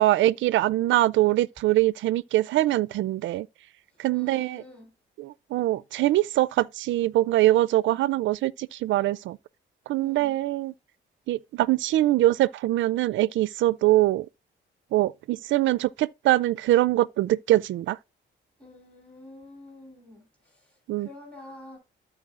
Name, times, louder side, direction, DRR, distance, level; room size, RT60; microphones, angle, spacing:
voice 1, 0.0-3.5 4.0-4.6 5.2-9.4 9.9-10.7 11.3-14.3 14.9-18.0 20.9-21.1, right 15 dB, 70° right, 0.4 m, -23 dB
voice 2, 4.1-4.9 10.0-10.4 18.6-21.8, left 2 dB, 5° left, 3.3 m, -48 dB
13.5 x 4.5 x 2.5 m
cardioid pair, 90°, 20 cm